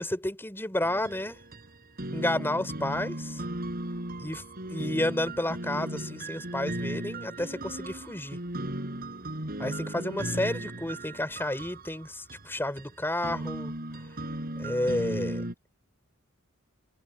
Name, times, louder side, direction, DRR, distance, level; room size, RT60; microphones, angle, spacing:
voice 1, 0.0-1.4 2.1-3.4 4.2-4.4 4.7-8.4 9.6-13.7 14.6-15.4, left 1 dB, 10° left, 4.9 m, -31 dB
sound 1, 0.8-15.5, right 1 dB, 45° right, 4.5 m, -36 dB
head